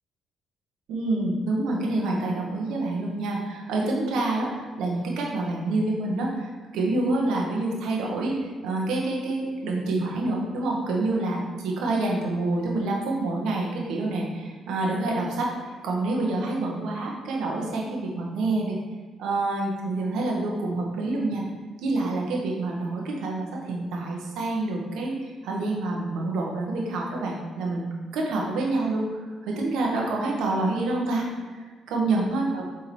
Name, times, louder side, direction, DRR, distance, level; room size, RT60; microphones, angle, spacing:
voice 1, 0.9-18.8 19.2-21.4 21.8-32.6, right 2 dB, 85° right, -2 dB, 1.5 m, -27 dB
7.5 x 3.9 x 4.5 m, 1.5 s
cardioid pair, 90°, 0 cm